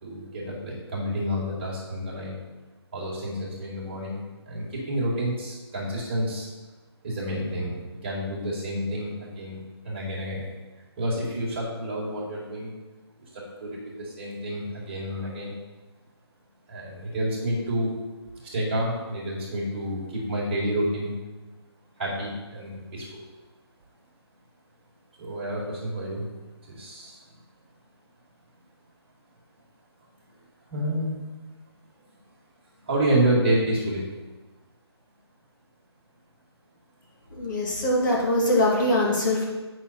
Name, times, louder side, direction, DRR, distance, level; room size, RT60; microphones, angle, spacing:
voice 1, 0.0-2.4 2.9-6.5 7.0-10.5 11.0-12.7 13.3-15.6 16.7-17.9 18.4-21.1 22.0-23.2 25.2-26.3 26.7-27.2 30.7-31.2 32.8-34.0, right 1 dB, 25° right, -5 dB, 1.9 m, -29 dB
voice 2, 37.3-39.5, left 1 dB, 45° left, -4 dB, 2.7 m, -22 dB
9.3 x 6.1 x 4.2 m, 1.2 s
hypercardioid pair, 175°, 14 cm